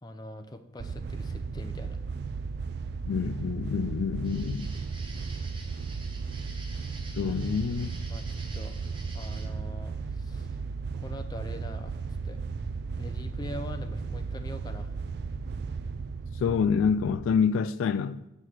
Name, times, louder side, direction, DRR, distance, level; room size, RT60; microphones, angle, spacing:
voice 1, 0.0-2.0 8.1-8.7 9.1-10.5 10.9-12.0 12.2-12.4 13.0-14.9, left 1 dB, 20° left, 0.5 m, -43 dB
sound 1, 0.8-17.4, right 4 dB, 55° right, 0.3 m, -35 dB
voice 2, 3.1-4.7 7.2-7.9 16.4-18.2, left 6 dB, 85° left, 0.3 m, -27 dB
sound 2, 4.2-9.5, right 3 dB, 25° right, 1.0 m, -49 dB
7.9 x 4.8 x 5.7 m
head